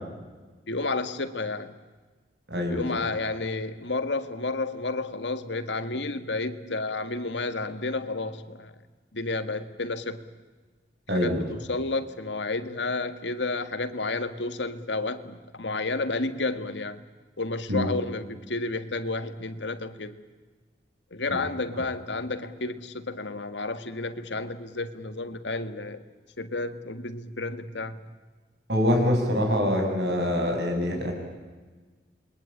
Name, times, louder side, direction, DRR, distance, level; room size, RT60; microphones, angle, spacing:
voice 1, 0.7-1.7 2.7-8.8 9.1-10.2 11.1-17.0 17.4-20.2 21.1-26.0 26.4-28.0, left 3 dB, 90° left, 10 dB, 1.8 m, -31 dB
voice 2, 2.5-2.8 11.1-11.4 17.7-17.9 21.3-21.4 21.7-21.8 28.7-31.1, left 1 dB, 75° right, 2 dB, 7.4 m, -25 dB
28.5 x 22.0 x 8.7 m, 1.3 s
head